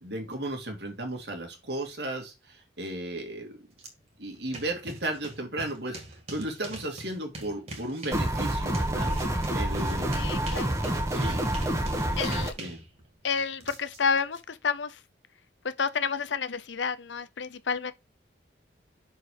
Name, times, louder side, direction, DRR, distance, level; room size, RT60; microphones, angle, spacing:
voice 1, 0.0-3.6 4.2-6.0 6.3-9.2 9.5-10.2 11.1-11.5 12.1-12.3 12.6-12.8, right 1 dB, 65° right, 2.2 m, -35 dB
sound 1, 3.8-3.9 4.2-14.4, right 1 dB, 35° right, 2.0 m, -43 dB
sound 2, 8.1-12.5, right 1 dB, 15° right, 1.1 m, -28 dB
voice 2, 10.2-10.7 12.2-12.5 13.2-15.0 15.6-17.9, left 5 dB, 80° left, 0.7 m, -30 dB
6.2 x 4.7 x 4.8 m
head